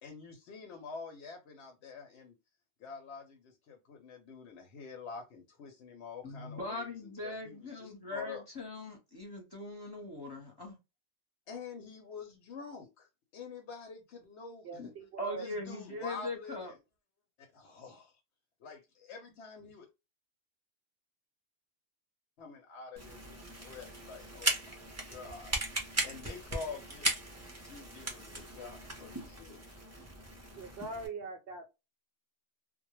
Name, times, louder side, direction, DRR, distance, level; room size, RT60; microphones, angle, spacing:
voice 1, 0.0-2.4 2.8-8.4 11.5-14.9 15.4-16.8 17.4-18.2 18.6-19.9 22.4-24.8 25.1-25.6 26.0-27.3 27.6-29.6, left 5 dB, 70° left, 0.9 m, -47 dB
voice 2, 6.2-10.8 14.8-14.9 15.2-16.7, left 2 dB, 25° left, 0.8 m, -41 dB
voice 3, 14.6-15.5 30.6-31.7, right 4 dB, 65° right, 0.8 m, -41 dB
sound 1, 23.0-31.1, right 1 dB, 20° right, 0.5 m, -38 dB
2.2 x 2.0 x 3.0 m
omnidirectional pair, 1.2 m